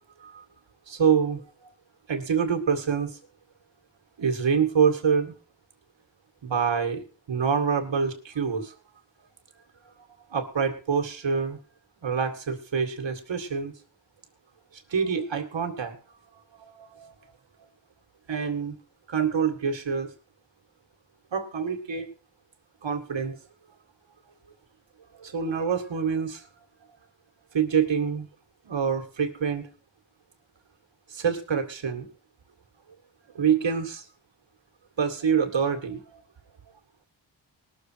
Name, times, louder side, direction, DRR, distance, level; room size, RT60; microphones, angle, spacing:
voice 1, 0.9-1.4 2.1-3.2 4.2-5.3 6.4-8.7 10.3-11.6 12.0-13.7 14.9-16.0 16.6-17.2 18.3-18.8 19.1-20.1 21.3-22.1 22.8-23.4 25.2-26.5 27.5-28.3 28.6-29.7 31.1-32.1 33.3-34.0 35.0-36.2, right 6 dB, 80° right, 5 dB, 2.1 m, -26 dB
20.0 x 6.9 x 4.6 m, 0.35 s
wide cardioid pair, 105°, 44 cm